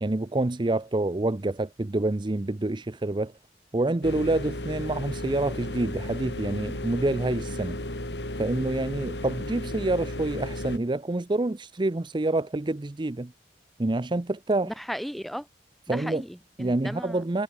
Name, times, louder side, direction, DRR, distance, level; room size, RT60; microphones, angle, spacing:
voice 1, 0.0-3.3 3.7-7.8 8.4-13.3 13.8-14.7 15.9-16.2 16.6-17.4, right 2 dB, 25° right, 0.6 m, -27 dB
sound 1, 4.0-10.8, left 1 dB, 70° left, 5.3 m, -34 dB
voice 2, 14.6-15.5 15.9-17.2, equal, ahead, 1.9 m, -35 dB
head